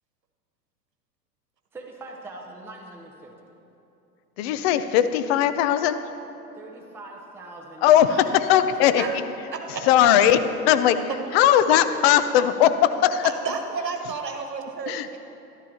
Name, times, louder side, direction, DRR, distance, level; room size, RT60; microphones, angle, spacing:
voice 1, 1.7-3.3 6.6-9.2, right 2 dB, 5° right, -1 dB, 0.8 m, -43 dB
voice 2, 4.4-6.0 7.8-9.1 9.9-10.4 10.7-13.2 14.9-15.2, left 11 dB, 40° left, 11 dB, 0.5 m, -19 dB
voice 3, 9.5-9.9 13.2-15.2, right 5 dB, 85° right, 4 dB, 1.2 m, -31 dB
13.0 x 12.0 x 2.9 m, 3.0 s
hypercardioid pair, 100°, 48 cm